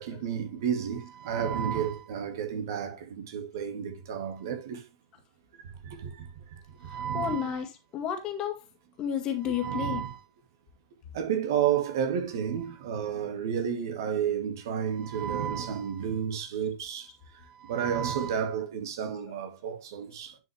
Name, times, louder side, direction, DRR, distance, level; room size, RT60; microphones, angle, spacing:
voice 1, 0.0-4.8 5.8-6.3 6.8-7.6 9.4-10.2 11.1-17.1 17.3-20.4, right 8 dB, 55° right, 2.2 m, -31 dB
voice 2, 6.9-8.6 9.0-10.0, left 9 dB, 35° left, 2.2 m, -32 dB
10.5 x 5.6 x 3.3 m
figure-of-eight pair, 95°, 2 cm